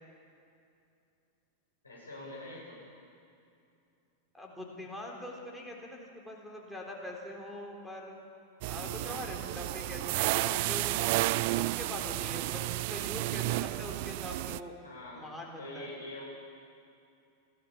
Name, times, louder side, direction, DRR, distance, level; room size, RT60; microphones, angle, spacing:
voice 1, 1.8-2.8 8.8-9.2 14.8-15.3 15.6-16.3, left 1 dB, 80° left, -4 dB, 6.6 m, -45 dB
voice 2, 4.3-8.2 8.6-11.1 11.5-14.8 15.1-15.9, left 1 dB, ahead, 0 dB, 3.8 m, -43 dB
sound 1, 8.6-14.6, right 18 dB, 50° right, 0.4 m, -32 dB
29.5 x 13.0 x 7.3 m, 2.5 s
figure-of-eight pair, 90°, 0 cm